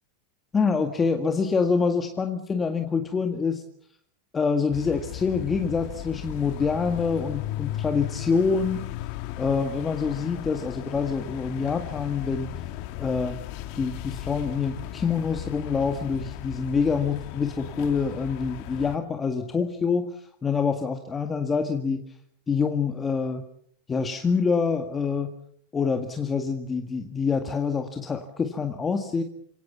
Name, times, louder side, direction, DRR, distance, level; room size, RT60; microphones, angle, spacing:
voice 1, 0.5-3.6 4.3-8.8 9.4-12.5 13.0-13.4 13.7-20.2 20.4-22.0 22.5-23.4 23.9-25.3 25.7-29.2, left 5 dB, 20° left, 5 dB, 1.9 m, -26 dB
sound 1, 4.7-19.0, left 13 dB, 55° left, 2.0 m, -36 dB
29.0 x 18.0 x 7.1 m, 0.66 s
supercardioid pair, 135°, 0 cm